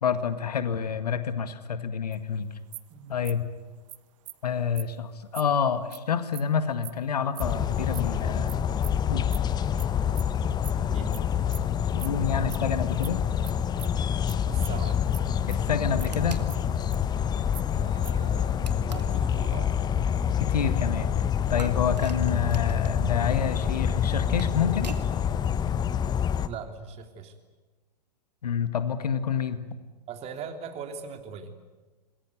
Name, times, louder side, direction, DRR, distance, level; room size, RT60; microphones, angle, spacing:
voice 1, 0.0-2.5 3.1-3.4 4.4-8.5 9.1-9.3 11.7-13.2 15.5-16.4 20.4-21.1 21.5-24.9 28.4-29.6, left 7 dB, 70° left, 11 dB, 2.0 m, -28 dB
sound 1, 2.1-2.2 2.7-2.9 3.2-3.5 3.9-4.0 4.3-4.4 4.8-4.9 5.3-5.4 5.9-6.0 6.3-6.4 6.8-6.9 7.3-7.4 7.9-8.0 8.5-8.6 8.8-8.9 9.3-9.4 9.8-9.9 10.1-10.3 10.6-11.2 11.5-11.6 12.0-12.1 12.4-12.6 13.0-13.1 13.4-13.5 13.8-14.0 14.3-14.4 14.6-14.8 15.1-15.2 15.5-16.1 16.5-17.2 17.5-18.3, right 18 dB, 50° right, 1.2 m, -42 dB
sound 2, 7.4-26.5, left 8 dB, 20° left, 1.1 m, -27 dB
voice 2, 10.7-11.2 14.4-15.0 17.7-19.8 26.4-27.3 30.1-31.5, right 6 dB, 30° right, 6 dB, 3.3 m, -40 dB
sound 3, 16.1-16.5 18.6-19.2 21.6-23.0 24.1-25.1, right 5 dB, 80° right, 2.3 m, -44 dB
27.0 x 20.5 x 9.5 m, 1.3 s
figure-of-eight pair, 105°, 21 cm